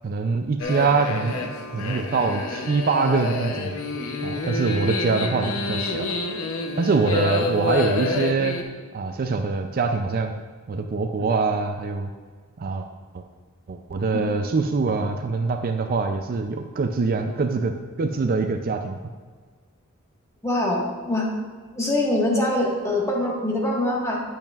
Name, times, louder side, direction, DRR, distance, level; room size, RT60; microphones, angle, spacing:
voice 1, 0.0-3.7 4.2-6.1 6.8-8.6 8.9-10.3 10.7-12.1 12.6-12.9 13.1-13.2 13.7-19.0, right 4 dB, 45° right, 6 dB, 0.4 m, -24 dB
sound 1, 0.6-8.6, left 2 dB, 75° left, 0.8 m, -28 dB
voice 2, 20.4-21.3 21.7-24.2, left 1 dB, 15° left, -4 dB, 1.5 m, -23 dB
8.7 x 8.1 x 2.4 m, 1.5 s
head